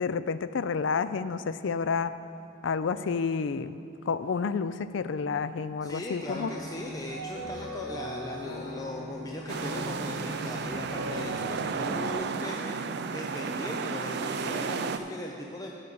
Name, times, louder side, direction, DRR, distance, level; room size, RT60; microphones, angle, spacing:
voice 1, 0.0-2.1 2.6-3.8 4.1-6.5, left 5 dB, 70° left, 13 dB, 0.4 m, -30 dB
voice 2, 5.8-15.7, left 1 dB, 20° left, 0 dB, 0.5 m, -39 dB
sound 1, 6.1-12.1, left 1 dB, 90° left, 2.7 m, -39 dB
sound 2, 9.5-15.0, right 5 dB, 60° right, 0.4 m, -33 dB
13.0 x 5.2 x 6.9 m, 2.6 s
head